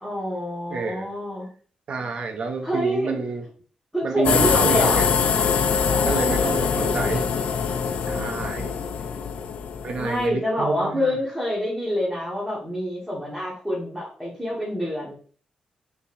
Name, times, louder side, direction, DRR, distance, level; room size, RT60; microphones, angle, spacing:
voice 1, 0.0-1.5 2.6-3.2 3.9-5.1 5.9-7.1 10.0-15.1, left 1 dB, ahead, -8 dB, 1.4 m, -27 dB
voice 2, 0.7-1.1 1.9-3.4 4.0-5.1 6.1-7.2 7.7-8.7 9.8-11.2, right 4 dB, 50° right, 3 dB, 0.7 m, -29 dB
sound 1, 4.2-10.3, left 6 dB, 60° left, 0.4 m, -23 dB
5.0 x 3.3 x 2.5 m, 0.43 s
wide cardioid pair, 150°, 2 cm